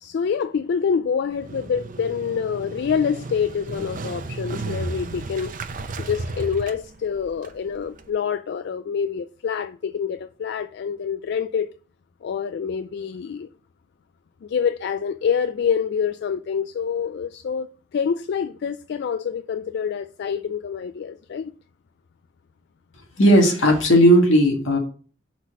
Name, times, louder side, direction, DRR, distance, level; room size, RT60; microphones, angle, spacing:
voice 1, 0.0-5.6 6.0-11.7 12.2-13.5 14.4-17.7 17.9-21.5, left 7 dB, 60° left, 0.3 m, -26 dB
Motorcycle, 1.3-8.1, right 3 dB, 45° right, 0.6 m, -34 dB
voice 2, 23.2-24.8, equal, 85° left, 1.8 m, -15 dB
5.9 x 4.1 x 6.0 m
head